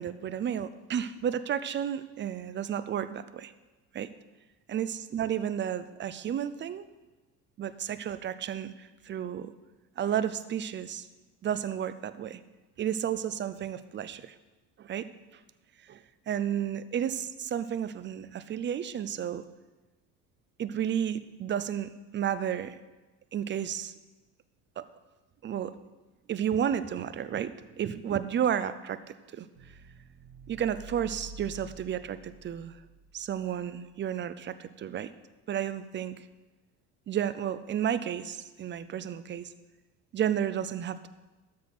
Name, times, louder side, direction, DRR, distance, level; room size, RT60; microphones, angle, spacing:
voice 1, 0.0-3.5 3.9-4.1 4.7-6.8 7.6-9.5 10.0-11.1 11.4-12.4 12.8-14.3 14.8-15.1 15.9-16.0 16.3-19.4 20.6-22.8 23.3-23.9 24.8-24.9 25.4-25.7 26.3-29.5 30.5-32.8 33.1-35.1 35.5-36.2 37.1-39.5 40.1-41.1, right 9 dB, 25° right, 14 dB, 0.5 m, -32 dB
sound 1, 29.5-33.7, right 2 dB, 75° right, 1.2 m, -49 dB
13.0 x 4.6 x 6.6 m, 1.2 s
figure-of-eight pair, 65°, 50 cm